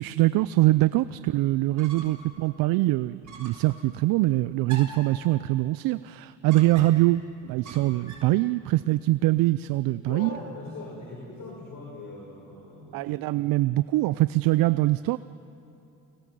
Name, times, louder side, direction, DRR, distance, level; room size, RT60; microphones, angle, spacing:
voice 1, 0.0-10.3 12.9-15.2, right 17 dB, 75° right, 16 dB, 0.5 m, -23 dB
sound 1, 1.8-2.3 2.6-2.7 3.2-3.7 4.7-5.1 6.5-7.1 7.7-8.4, right 3 dB, 55° right, 6.6 m, -44 dB
voice 2, 10.1-13.1, left 2 dB, 60° left, -2 dB, 5.8 m, -40 dB
29.5 x 19.5 x 7.6 m, 2.8 s
supercardioid pair, 55°, 35 cm